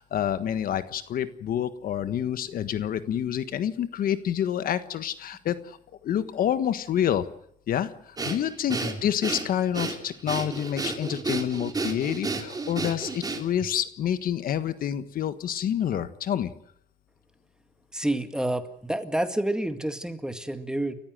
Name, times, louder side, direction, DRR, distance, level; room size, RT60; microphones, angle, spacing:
voice 1, 0.0-5.8 6.0-7.3 7.7-16.5, left 10 dB, 60° left, 12 dB, 1.5 m, -28 dB
Breathing, 8.2-13.7, right 3 dB, 20° right, 3.7 m, -32 dB
voice 2, 8.7-9.0 17.9-20.9, right 1 dB, 5° right, 8 dB, 1.9 m, -29 dB
29.5 x 15.0 x 7.7 m, 0.71 s
cardioid pair, 110°, 17 cm